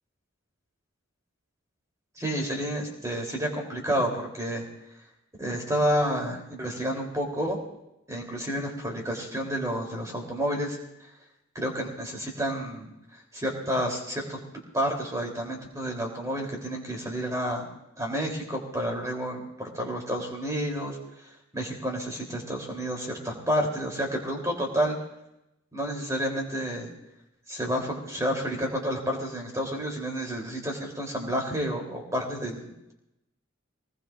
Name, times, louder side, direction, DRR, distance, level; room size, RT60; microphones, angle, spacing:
voice 1, 2.2-4.6 5.4-7.6 8.1-10.8 11.5-12.9 13.3-14.4 14.7-17.7 18.0-21.0 21.5-25.0 25.7-26.9 27.5-32.9, equal, 15° right, 0 dB, 3.4 m, -30 dB
23.5 x 20.0 x 2.5 m, 0.87 s
head